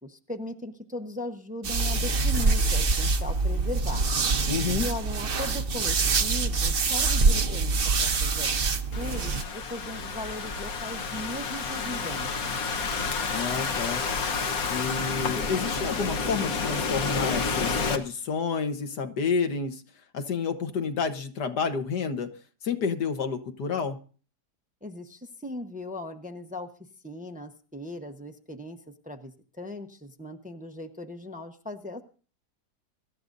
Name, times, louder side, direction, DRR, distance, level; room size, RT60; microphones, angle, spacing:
voice 1, 0.0-4.1 4.8-8.7 9.0-12.6 24.8-26.7 27.0-28.8 29.0-32.0, left 1 dB, 5° right, 5 dB, 0.8 m, -38 dB
sound 1, 1.6-9.4, right 4 dB, 40° right, 0.9 m, -25 dB
voice 2, 4.5-4.9 13.3-14.0 14.7-19.8 20.1-22.3 22.6-24.0, left 5 dB, 80° left, 7 dB, 1.9 m, -29 dB
Thunderstorm / Rain, 8.9-18.0, left 4 dB, 60° left, 1.6 m, -30 dB
24.0 x 13.0 x 2.7 m, 0.40 s
omnidirectional pair, 1.7 m